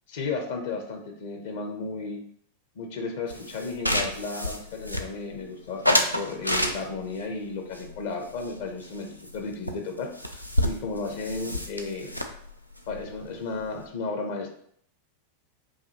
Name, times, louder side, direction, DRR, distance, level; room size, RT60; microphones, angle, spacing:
voice 1, 0.1-2.2 2.7-12.2 12.9-14.5, left 3 dB, 55° left, 4 dB, 0.6 m, -34 dB
sound 1, 3.3-5.4 5.8-7.2 7.7-9.0 9.3-9.4 9.7-9.8 10.0-13.8, left 1 dB, 90° left, 0.4 m, -29 dB
4.8 x 2.7 x 2.8 m, 0.67 s
figure-of-eight pair, 90°, 0 cm